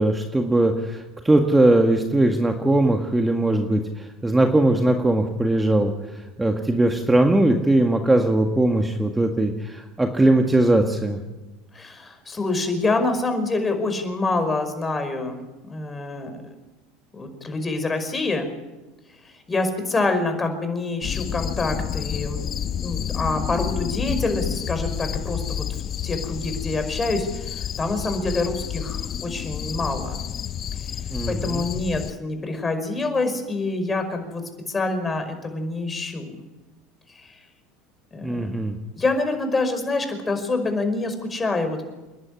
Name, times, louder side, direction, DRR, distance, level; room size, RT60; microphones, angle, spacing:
voice 1, 0.0-11.2 31.1-31.7 38.2-38.8, right 1 dB, 10° right, 4 dB, 1.9 m, -20 dB
voice 2, 11.7-15.4 15.7-16.4 17.1-18.5 19.2-25.7 26.0-30.2 31.3-36.4 37.1-37.4 38.1-38.6 39.0-41.9, left 3 dB, 20° left, 7 dB, 5.3 m, -26 dB
sound 1, 21.0-32.1, left 9 dB, 40° left, 0.8 m, -30 dB
29.0 x 11.0 x 9.8 m, 1.1 s
hypercardioid pair, 85°, 0 cm